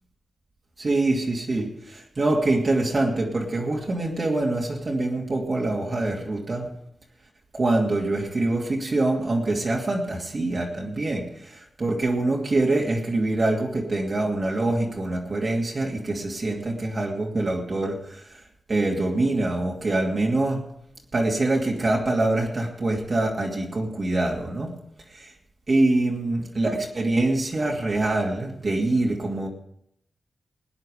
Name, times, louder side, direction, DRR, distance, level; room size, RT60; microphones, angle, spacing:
voice 1, 0.8-6.7 7.5-18.4 18.7-20.7 21.1-24.8 25.1-25.3 25.7-29.5, right 2 dB, 45° right, -2 dB, 2.5 m, -25 dB
20.0 x 9.8 x 5.0 m, 0.72 s
wide cardioid pair, 90°, 0 cm